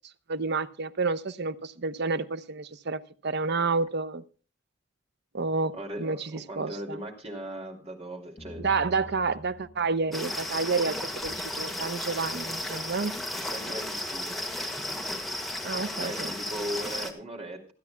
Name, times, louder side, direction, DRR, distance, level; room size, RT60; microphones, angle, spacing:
voice 1, 0.3-4.2 5.3-5.7 6.0-7.0 8.6-13.1 15.6-16.3, right 4 dB, 55° right, 12 dB, 0.7 m, -29 dB
voice 2, 5.7-8.7 13.3-14.7 16.0-17.7, right 1 dB, 30° right, 2 dB, 2.9 m, -38 dB
sound 1, 8.4-11.3, equal, 20° left, 5.0 m, -47 dB
sound 2, 10.1-17.1, left 1 dB, ahead, 1.7 m, -34 dB
28.0 x 9.6 x 2.2 m, 0.37 s
head